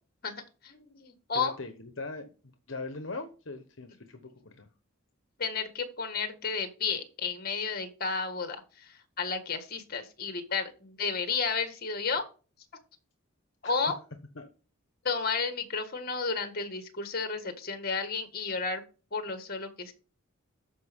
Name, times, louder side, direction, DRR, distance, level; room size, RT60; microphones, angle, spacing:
voice 1, 0.6-1.5 5.4-8.6 8.8-12.2 13.6-14.0 15.0-18.8 19.1-19.9, left 5 dB, 45° left, 7 dB, 1.8 m, -32 dB
voice 2, 1.3-2.2 2.7-4.7 13.6-13.7 14.4-14.5, left 3 dB, 65° left, 7 dB, 1.1 m, -40 dB
13.0 x 5.2 x 3.6 m, 0.34 s
head